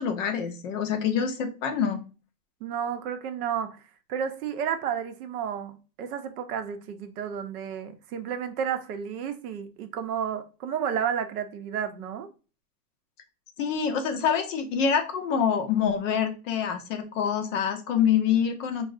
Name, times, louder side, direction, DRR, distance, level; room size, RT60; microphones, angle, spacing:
voice 1, 0.0-2.0 13.6-18.9, left 7 dB, 50° left, 0.5 m, -26 dB
voice 2, 2.6-3.8 4.1-12.3, right 8 dB, 60° right, 0.6 m, -31 dB
3.5 x 2.0 x 2.4 m
supercardioid pair, 175°, 50 cm